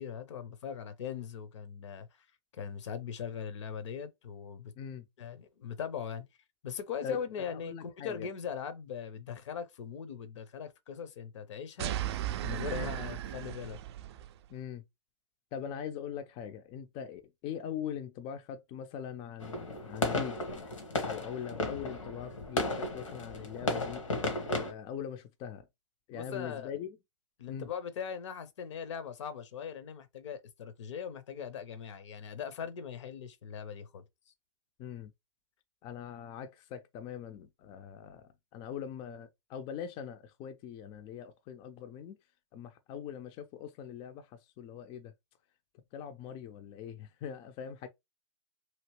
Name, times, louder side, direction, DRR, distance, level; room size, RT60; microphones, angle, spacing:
voice 1, 0.0-2.1 2.5-4.7 5.2-6.2 6.6-13.8 26.1-26.7 27.4-34.0, left 7 dB, 70° left, 0.8 m, -40 dB
voice 2, 4.8-5.1 7.0-8.3 12.7-12.9 14.5-14.8 15.5-20.6 21.0-24.0 24.5-25.7 26.1-27.0 27.5-27.7 34.8-35.1 35.8-42.2 42.5-45.1 45.9-47.9, left 8 dB, 35° left, 0.4 m, -42 dB
sound 1, 11.8-14.4, right 13 dB, 60° right, 0.4 m, -36 dB
sound 2, 19.4-24.7, left 2 dB, 85° left, 1.2 m, -34 dB
2.9 x 2.7 x 3.0 m
hypercardioid pair, 115°, 16 cm